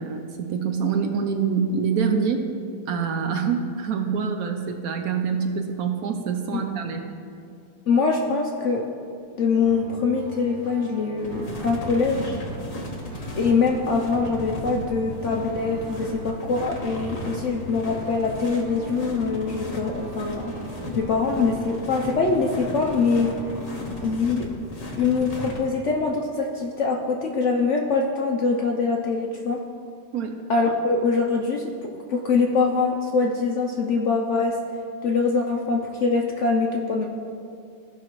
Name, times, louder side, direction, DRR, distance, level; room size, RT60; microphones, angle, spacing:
voice 1, 0.0-2.4 2.9-7.0 30.1-30.3, right 6 dB, 70° right, 5 dB, 1.0 m, -25 dB
voice 2, 7.9-8.8 9.4-12.4 13.4-20.5 20.9-23.3 24.0-24.5 25.0-29.6 30.5-31.7 32.1-34.6 35.0-37.1, left 4 dB, 60° left, 0 dB, 0.8 m, -23 dB
sound 1, 9.6-24.2, right 2 dB, 40° right, 2.8 m, -39 dB
sound 2, 11.2-25.6, left 2 dB, 30° left, 0.8 m, -36 dB
15.0 x 5.6 x 3.1 m, 2.4 s
omnidirectional pair, 1.8 m